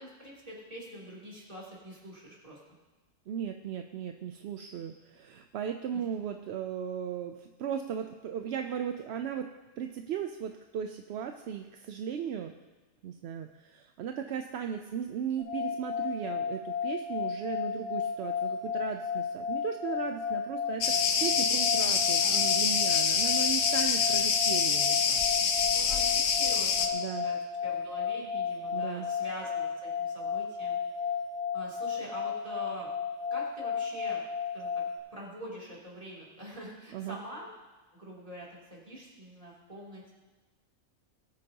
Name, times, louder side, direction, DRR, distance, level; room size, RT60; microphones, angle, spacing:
voice 1, 0.0-2.6 21.6-22.4 25.7-27.4 27.6-30.8 31.5-32.9 33.3-34.2 34.5-34.8 35.1-37.5 37.9-40.1, right 1 dB, 25° right, -6 dB, 3.2 m, -45 dB
voice 2, 3.3-12.5 13.0-25.2 26.9-27.3 28.7-29.1 36.9-37.2, right 8 dB, 65° right, 6 dB, 0.7 m, -37 dB
sound 1, 15.4-35.0, left 6 dB, 60° left, 2.2 m, -33 dB
Cricket, 20.8-26.9, left 6 dB, 85° left, 1.2 m, -26 dB
20.5 x 9.1 x 2.9 m, 1.2 s
omnidirectional pair, 1.4 m